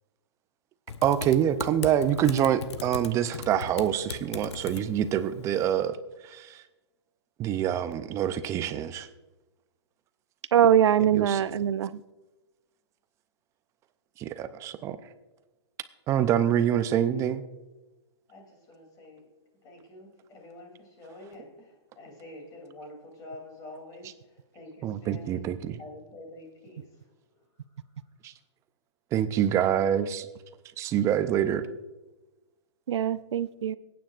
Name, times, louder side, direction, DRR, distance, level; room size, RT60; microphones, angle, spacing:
Typing, 0.9-5.9, left 7 dB, 70° left, 0.9 m, -39 dB
voice 1, 1.0-6.6 7.4-9.1 11.1-11.4 14.2-15.0 16.1-17.4 24.8-25.8 28.2-28.3 29.1-30.3 30.8-31.7, right 10 dB, 20° right, 12 dB, 0.5 m, -26 dB
voice 2, 10.5-12.0 32.9-33.7, right 9 dB, 75° right, 16 dB, 0.5 m, -22 dB
voice 3, 18.3-19.3 19.6-25.4 25.8-27.4, left 1 dB, 25° left, 2 dB, 3.1 m, -47 dB
24.0 x 9.2 x 2.5 m, 1.1 s
hypercardioid pair, 140°, 15 cm